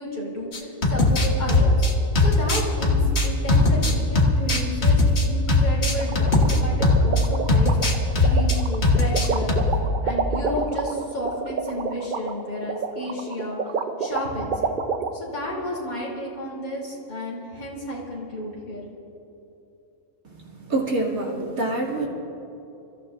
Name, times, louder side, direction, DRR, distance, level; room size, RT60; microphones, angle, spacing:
voice 1, 0.0-1.9 2.2-9.6 10.0-13.6 14.0-14.7 15.1-18.8, left 1 dB, 85° left, -4 dB, 3.6 m, -32 dB
sound 1, 0.5-7.2 7.5-8.6 8.8-9.8, left 2 dB, 50° left, 1.6 m, -19 dB
sound 2, 6.0-15.1, right 5 dB, 50° right, 0.7 m, -28 dB
voice 2, 20.6-22.1, right 2 dB, 80° right, -4 dB, 3.0 m, -25 dB
28.5 x 14.5 x 2.6 m, 3.0 s
omnidirectional pair, 1.5 m